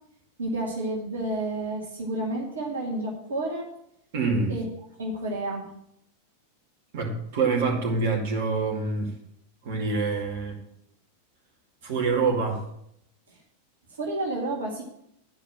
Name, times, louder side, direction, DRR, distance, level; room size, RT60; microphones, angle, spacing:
voice 1, 0.4-3.7 4.5-4.7 5.0-5.7 14.0-14.8, right 2 dB, 70° right, -1 dB, 2.0 m, -30 dB
voice 2, 4.1-4.6 6.9-9.2 9.6-10.6 11.8-12.6, right 4 dB, 50° right, 0 dB, 2.2 m, -26 dB
11.0 x 5.1 x 7.5 m, 0.74 s
figure-of-eight pair, 90°, 0 cm